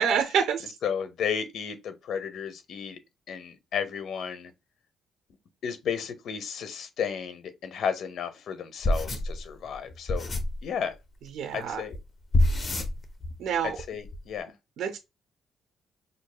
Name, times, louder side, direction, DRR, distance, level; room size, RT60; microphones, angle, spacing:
voice 1, 0.0-0.7 11.3-11.8 13.4-13.8 14.8-15.0, right 7 dB, 80° right, 0.6 m, -27 dB
voice 2, 0.8-3.0 3.3-4.5 5.6-10.3 10.6-10.9 11.5-11.9 13.6-14.5, left 7 dB, 70° left, 0.7 m, -33 dB
sound 1, 8.8-10.6 11.9-12.0 12.3-13.4 13.7-14.2, left 1 dB, 35° left, 0.8 m, -27 dB
5.3 x 2.7 x 2.2 m
cardioid pair, 90°, 0 cm